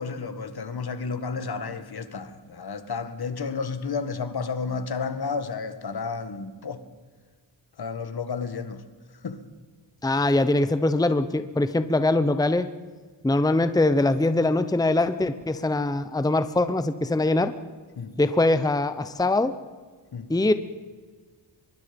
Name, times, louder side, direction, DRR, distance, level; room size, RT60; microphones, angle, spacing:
voice 1, 0.0-6.8 7.8-8.8 9.2-9.4 18.0-18.2 20.1-20.3, left 5 dB, 60° left, 1.9 m, -32 dB
voice 2, 10.0-12.7 13.2-17.5 18.2-19.5 20.3-20.5, left 2 dB, 10° left, 0.9 m, -22 dB
24.0 x 22.5 x 5.3 m
wide cardioid pair, 110°, 44 cm